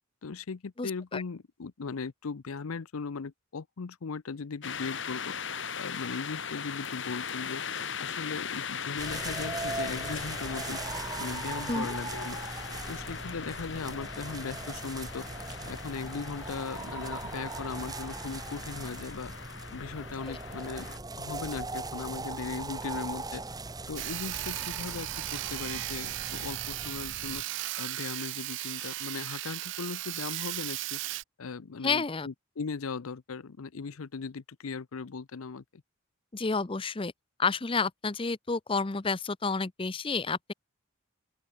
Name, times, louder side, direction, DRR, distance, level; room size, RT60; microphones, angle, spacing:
voice 1, 0.2-5.3 5.7-7.6 8.0-10.8 11.2-12.4 12.9-15.3 15.6-19.3 19.7-23.4 23.9-27.4 27.8-31.0 31.4-35.8, left 5 dB, 85° left, 0.6 m, -38 dB
voice 2, 0.8-1.2 11.7-11.9 20.3-20.4 31.8-32.3 36.3-37.1 37.4-40.5, left 4 dB, 25° left, 0.6 m, -30 dB
sound 1, 4.6-21.0, left 7 dB, 60° left, 2.1 m, -39 dB
sound 2, 9.0-27.4, right 3 dB, 20° right, 1.7 m, -39 dB
Sawing, 24.0-31.2, right 17 dB, 55° right, 0.3 m, -36 dB
open air
head